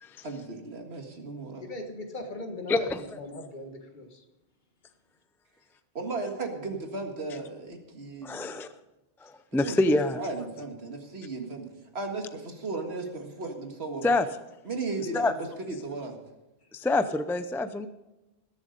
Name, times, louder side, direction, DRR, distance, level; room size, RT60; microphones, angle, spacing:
voice 1, 0.2-1.6 5.9-8.5 9.5-11.7 11.9-14.2 14.6-16.2, right 3 dB, 80° right, 3 dB, 2.1 m, -35 dB
voice 2, 1.6-4.2, left 2 dB, 50° left, 5 dB, 1.7 m, -39 dB
voice 3, 2.7-3.0 8.2-8.7 9.2-10.2 14.0-14.3 15.1-15.3 16.7-17.9, left 2 dB, 5° left, 11 dB, 0.3 m, -26 dB
20.5 x 7.3 x 5.2 m, 1.0 s
omnidirectional pair, 1.1 m